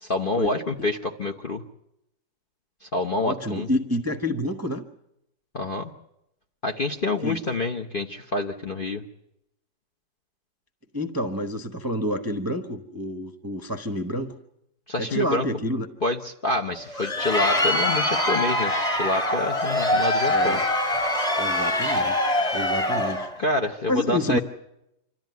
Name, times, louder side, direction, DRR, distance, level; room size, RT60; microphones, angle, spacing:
voice 1, 0.0-1.6 2.8-3.7 5.5-5.9 6.6-9.0 14.9-15.4 16.0-20.6 23.4-24.4, left 2 dB, 35° left, 5 dB, 1.0 m, -27 dB
voice 2, 3.2-4.8 7.2-7.4 10.9-14.3 15.0-15.9 20.3-20.6 21.4-23.3 23.9-24.4, equal, 15° right, 5 dB, 0.8 m, -28 dB
Crowd, 16.8-23.3, left 1 dB, 20° left, 2.6 m, -24 dB
26.5 x 13.5 x 9.3 m, 0.83 s
omnidirectional pair, 1.9 m